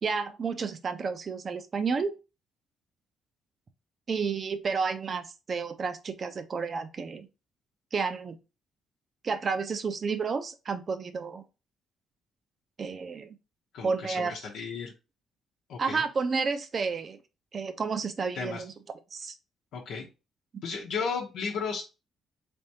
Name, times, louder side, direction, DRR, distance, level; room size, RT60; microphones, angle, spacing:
voice 1, 0.0-2.1 4.1-7.3 7.9-8.4 9.2-11.4 12.8-13.3 13.8-14.4 15.8-17.2 17.5-18.7 19.1-19.4, right 5 dB, 45° right, 10 dB, 0.6 m, -31 dB
voice 2, 13.7-14.9 15.7-16.0 18.4-18.6 19.7-20.1 20.6-21.9, left 5 dB, 80° left, -2 dB, 0.8 m, -34 dB
3.5 x 3.5 x 2.8 m, 0.28 s
cardioid pair, 90°, 0 cm